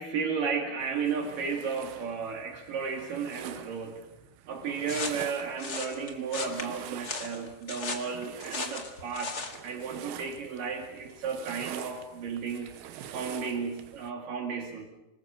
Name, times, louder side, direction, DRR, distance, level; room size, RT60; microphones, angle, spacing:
voice 1, 0.0-4.1 4.5-12.7 13.1-14.9, right 5 dB, 65° right, 2 dB, 3.4 m, -34 dB
sound 1, 0.8-14.1, right 10 dB, 85° right, 3.0 m, -46 dB
sound 2, 4.9-9.6, left 4 dB, 35° left, 1.7 m, -37 dB
26.0 x 20.5 x 6.1 m, 0.92 s
omnidirectional pair, 4.3 m